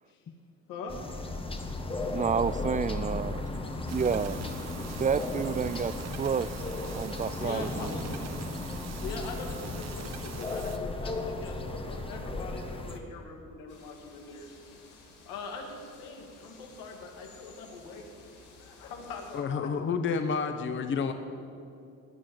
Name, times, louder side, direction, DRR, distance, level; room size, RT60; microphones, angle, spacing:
sound 1, 0.9-13.0, left 2 dB, 15° left, 1.4 m, -35 dB
voice 1, 2.1-3.4 3.9-4.4 5.0-6.5 6.9-7.9, right 6 dB, 25° right, 17 dB, 0.4 m, -29 dB
sound 2, 3.9-10.8, right 8 dB, 50° right, 1.2 m, -45 dB
voice 2, 6.0-6.5 6.9-8.3 8.9-14.9 15.2-18.2 18.6-19.7, left 4 dB, 90° left, 2 dB, 2.7 m, -43 dB
sound 3, 13.7-19.4, left 3 dB, 65° left, 4.6 m, -55 dB
voice 3, 19.3-21.1, left 5 dB, 35° left, 8 dB, 1.0 m, -29 dB
18.5 x 7.6 x 9.2 m, 2.6 s
cardioid pair, 115°, 33 cm